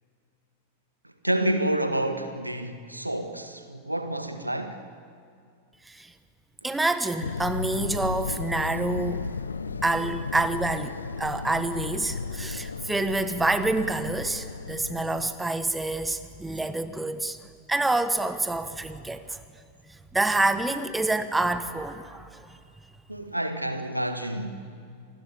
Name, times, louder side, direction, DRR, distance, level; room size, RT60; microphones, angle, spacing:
voice 1, 1.2-4.8 23.1-24.6, right 1 dB, 85° right, 1.7 m, -29 dB
voice 2, 6.6-9.2 9.8-17.4 17.7-19.4 19.9-22.5, right 2 dB, 10° right, 1.4 m, -27 dB
sound 1, 7.2-15.3, left 4 dB, 75° left, 0.8 m, -34 dB
27.5 x 20.0 x 10.0 m
figure-of-eight pair, 90°, 0 cm